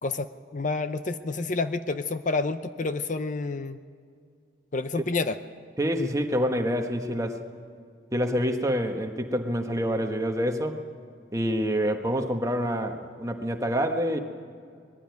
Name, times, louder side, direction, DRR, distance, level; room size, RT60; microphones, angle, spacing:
voice 1, 0.0-3.8 4.7-5.4, left 3 dB, 40° left, 10 dB, 0.6 m, -29 dB
voice 2, 5.8-7.4 8.1-10.8 11.3-14.2, equal, 15° right, 4 dB, 1.3 m, -27 dB
21.5 x 15.5 x 9.5 m, 2.2 s
head